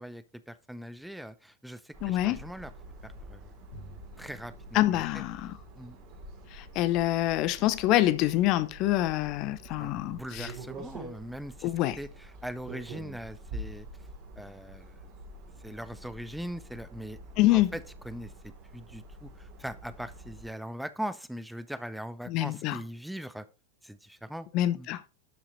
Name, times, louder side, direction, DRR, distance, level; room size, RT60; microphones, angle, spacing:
voice 1, 0.0-2.7 3.0-3.5 4.2-5.2 5.7-6.0 9.8-11.7 12.0-13.9 14.4-15.0 15.6-17.2 17.5-23.5 23.8-24.5 24.7-24.9, equal, ahead, 0.7 m, -41 dB
sound 1, 1.9-20.5, right 2 dB, 40° right, 3.0 m, -46 dB
voice 2, 2.0-2.4 4.7-5.6 6.5-10.5 11.6-12.0 17.4-17.7 22.3-22.8 24.5-25.0, left 15 dB, 40° left, 0.7 m, -26 dB
Bowed string instrument, 3.7-9.4, equal, 65° left, 4.9 m, -55 dB
12.0 x 5.7 x 4.1 m
figure-of-eight pair, 90°, 0 cm